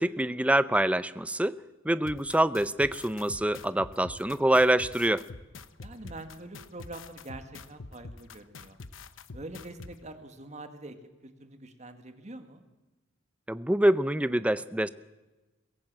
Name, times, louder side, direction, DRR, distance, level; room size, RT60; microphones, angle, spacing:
voice 1, 0.0-1.5 1.8-5.2 13.5-14.9, right 1 dB, 5° right, 15 dB, 0.6 m, -25 dB
sound 1, 2.0-9.9, left 3 dB, 75° left, 1.0 m, -45 dB
voice 2, 5.8-8.8 9.3-11.0 11.2-12.6, right 2 dB, 35° right, 8 dB, 1.9 m, -44 dB
22.5 x 17.0 x 7.5 m, 1.1 s
head